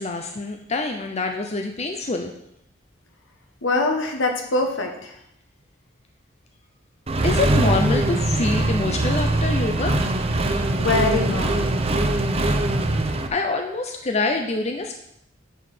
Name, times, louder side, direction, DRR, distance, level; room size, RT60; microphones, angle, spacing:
voice 1, 0.0-2.3 7.2-10.0 10.5-10.6 13.3-14.9, left 3 dB, 35° left, 4 dB, 0.7 m, -26 dB
voice 2, 3.6-5.2 10.8-11.7, left 3 dB, 75° left, 3 dB, 1.5 m, -23 dB
Accelerating revving vroom, 7.1-13.3, right 2 dB, 30° right, 0.7 m, -22 dB
9.1 x 4.8 x 6.0 m, 0.77 s
head